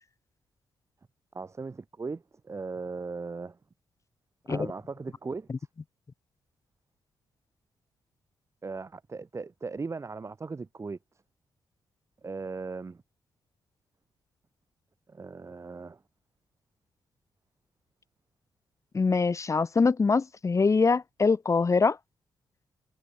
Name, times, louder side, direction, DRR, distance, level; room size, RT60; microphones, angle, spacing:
voice 1, 1.3-3.6 4.5-5.7 8.6-11.0 12.2-13.0 15.1-16.0, right 4 dB, 35° right, 3.6 m, -38 dB
voice 2, 18.9-22.0, left 4 dB, 35° left, 2.4 m, -23 dB
cardioid pair, 75°, 9 cm